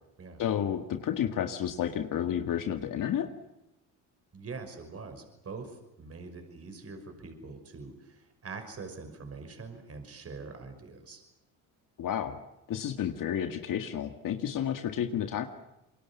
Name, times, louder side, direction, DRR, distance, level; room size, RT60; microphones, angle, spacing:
voice 1, 0.4-3.3 12.0-12.4 12.7-15.5, left 9 dB, 65° left, 6 dB, 1.9 m, -31 dB
voice 2, 4.3-11.2, right 4 dB, 40° right, 6 dB, 5.8 m, -44 dB
27.0 x 23.0 x 7.2 m, 0.92 s
supercardioid pair, 80°, 36 cm